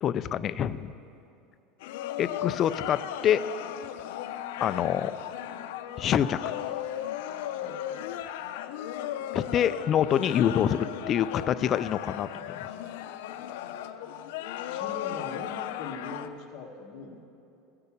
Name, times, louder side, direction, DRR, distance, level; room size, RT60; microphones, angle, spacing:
voice 1, 0.0-0.9 2.2-3.4 4.6-5.1 6.0-6.4 9.3-12.7, left 9 dB, 30° left, 13 dB, 0.3 m, -26 dB
sound 1, 1.8-16.3, left 11 dB, 80° left, 0.5 m, -36 dB
voice 2, 7.6-8.3 13.4-14.1 14.7-17.2, left 3 dB, 45° left, 2 dB, 1.3 m, -42 dB
14.5 x 6.7 x 8.4 m, 2.7 s
cardioid pair, 165°, 0 cm